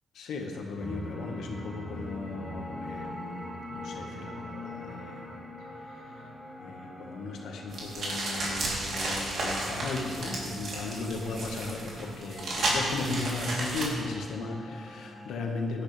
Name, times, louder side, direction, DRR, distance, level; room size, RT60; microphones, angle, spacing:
voice 1, 0.1-5.3 6.6-15.8, left 3 dB, 85° left, 2 dB, 1.6 m, -36 dB
sound 1, 0.8-15.3, left 1 dB, 10° right, 2.7 m, -44 dB
sound 2, 7.7-13.8, right 2 dB, 60° right, 3.4 m, -33 dB
17.0 x 11.5 x 3.4 m, 2.1 s
cardioid pair, 110°, 0 cm